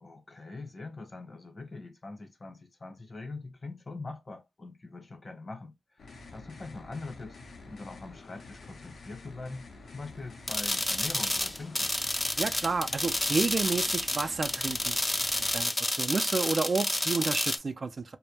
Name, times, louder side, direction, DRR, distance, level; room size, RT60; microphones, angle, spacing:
voice 1, 0.0-6.0 6.3-9.7 9.9-11.9, left 3 dB, 55° left, 0.9 m, -43 dB
sound 1, 6.0-15.6, left 3 dB, 85° left, 0.6 m, -49 dB
sound 2, 10.5-17.6, left 1 dB, 20° left, 0.4 m, -30 dB
voice 2, 12.4-15.0 15.5-18.0, right 4 dB, 60° right, 0.4 m, -30 dB
2.1 x 2.1 x 3.0 m
cardioid pair, 45°, 0 cm